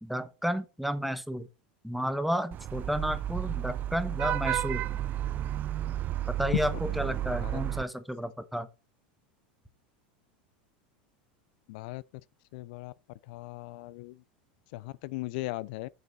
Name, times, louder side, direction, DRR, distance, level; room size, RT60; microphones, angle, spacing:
voice 1, 0.0-1.5 1.8-4.8 6.4-8.7, equal, ahead, 1.0 m, -32 dB
Vehicle horn car horn honking / Traffic noise roadway noise, 2.5-7.8, right 12 dB, 35° right, 0.5 m, -32 dB
voice 2, 11.7-12.0 12.5-12.9 13.3-14.1 14.7-15.9, left 20 dB, 65° left, 0.3 m, -36 dB
6.7 x 6.6 x 4.1 m
hypercardioid pair, 110°, 5 cm